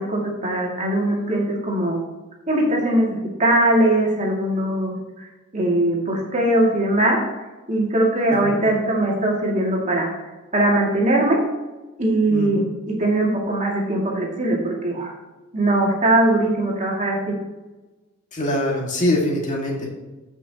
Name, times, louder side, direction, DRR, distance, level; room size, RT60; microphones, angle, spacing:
voice 1, 0.0-2.0 2.5-3.1 3.4-4.9 5.5-7.2 7.7-10.1 10.5-11.4 12.0-15.1 15.5-17.3, right 1 dB, 40° right, -2 dB, 2.4 m, -20 dB
voice 2, 12.3-12.7 18.3-19.9, left 1 dB, 40° left, -1 dB, 2.1 m, -24 dB
14.5 x 6.1 x 3.0 m, 1.2 s
head